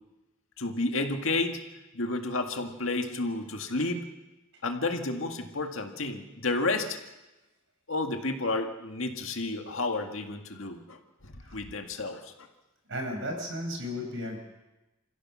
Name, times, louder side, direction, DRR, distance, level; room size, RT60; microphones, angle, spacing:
voice 1, 0.6-1.6 1.9-4.1 4.6-7.0 7.9-11.0 11.2-12.2, left 2 dB, 65° left, 4 dB, 2.0 m, -31 dB
voice 2, 12.9-14.4, left 1 dB, 65° right, 3 dB, 5.5 m, -34 dB
28.5 x 15.5 x 6.3 m, 1.0 s
head